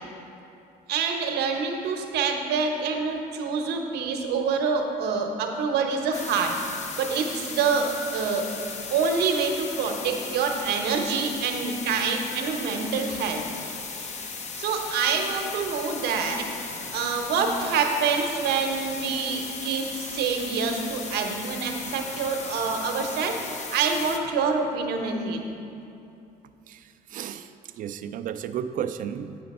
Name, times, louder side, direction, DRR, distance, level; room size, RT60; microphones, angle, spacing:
voice 1, 0.9-6.5 7.0-8.5 8.9-13.4 14.5-16.5 16.9-25.4, right 5 dB, 80° right, 3 dB, 0.8 m, -26 dB
sound 1, 6.1-24.2, left 4 dB, 45° left, 0.6 m, -37 dB
voice 2, 26.7-27.5 27.8-29.4, right 9 dB, 55° right, 10 dB, 0.4 m, -33 dB
8.5 x 5.1 x 4.1 m, 2.7 s
cardioid pair, 110°, 17 cm